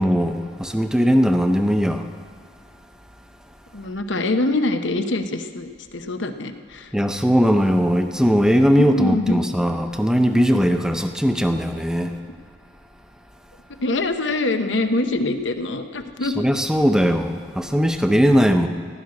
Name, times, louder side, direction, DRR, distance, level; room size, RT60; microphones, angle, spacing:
voice 1, 0.0-2.1 6.9-12.1 16.4-18.7, equal, 5° right, 6 dB, 0.7 m, -19 dB
voice 2, 3.7-6.9 8.8-9.5 13.8-16.4, left 2 dB, 90° left, 8 dB, 0.9 m, -24 dB
16.0 x 6.5 x 9.5 m, 2.1 s
head